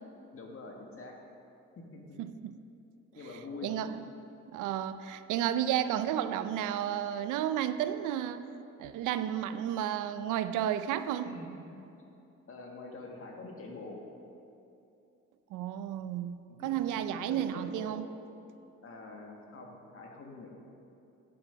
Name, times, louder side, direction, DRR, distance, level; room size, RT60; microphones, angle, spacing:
voice 1, 0.3-1.2 1.8-2.2 3.2-3.7 11.2-11.5 12.5-14.0 16.5-16.8 17.1-18.0 18.8-20.5, left 3 dB, 45° left, 1 dB, 1.8 m, -45 dB
voice 2, 2.2-2.5 3.6-4.0 4.5-8.4 8.8-11.3 15.5-18.1, right 10 dB, 90° right, 12 dB, 0.5 m, -32 dB
10.5 x 8.1 x 5.1 m, 2.7 s
cardioid pair, 90°, 30 cm